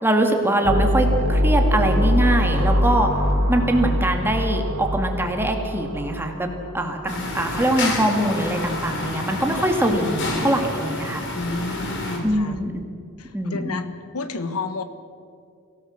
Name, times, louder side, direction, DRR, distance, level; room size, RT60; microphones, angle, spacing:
voice 1, 0.0-3.1 3.5-6.5 6.7-11.2 12.2-12.7 13.3-13.8, right 1 dB, 10° right, 3 dB, 2.2 m, -22 dB
sound 1, 0.6-7.1, equal, 75° right, 3.6 m, -22 dB
sound 2, 7.1-12.2, left 2 dB, 55° left, 3.9 m, -29 dB
voice 2, 9.0-9.3 11.3-12.6 13.2-13.8 14.1-14.8, left 3 dB, 85° left, 10 dB, 1.5 m, -31 dB
24.0 x 16.5 x 7.4 m, 2.4 s
head